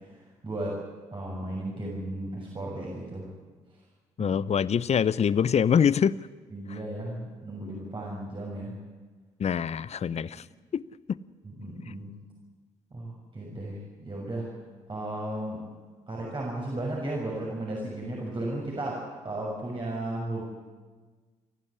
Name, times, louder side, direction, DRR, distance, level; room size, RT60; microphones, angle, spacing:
voice 1, 0.1-0.8 1.1-3.3 4.2-4.4 6.5-8.7 11.4-12.1 12.9-14.5 14.9-15.6 16.1-20.4, right 1 dB, 30° right, -3 dB, 6.8 m, -35 dB
voice 2, 4.2-6.2 6.7-6.8 9.4-10.4 10.7-10.8 11.1-11.2, left 7 dB, 45° left, 20 dB, 0.7 m, -24 dB
30.0 x 11.5 x 9.8 m, 1.4 s
hypercardioid pair, 45°, 16 cm